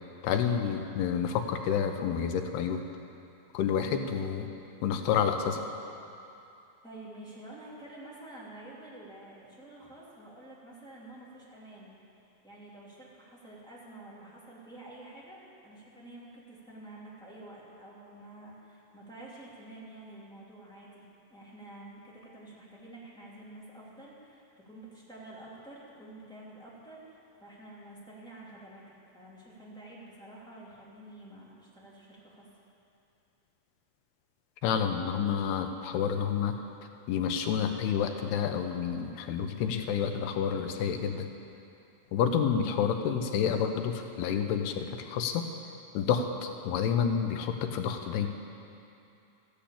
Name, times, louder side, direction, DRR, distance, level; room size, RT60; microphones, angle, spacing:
voice 1, 0.2-2.8 3.5-4.5 4.8-5.6 34.6-36.6 37.1-41.3 42.1-45.5 45.9-48.3, left 7 dB, 80° left, 5 dB, 2.7 m, -29 dB
voice 2, 6.8-12.0 12.4-28.8 29.1-32.5, right 1 dB, ahead, -7 dB, 2.0 m, -49 dB
14.5 x 10.5 x 8.5 m, 2.7 s
omnidirectional pair, 4.8 m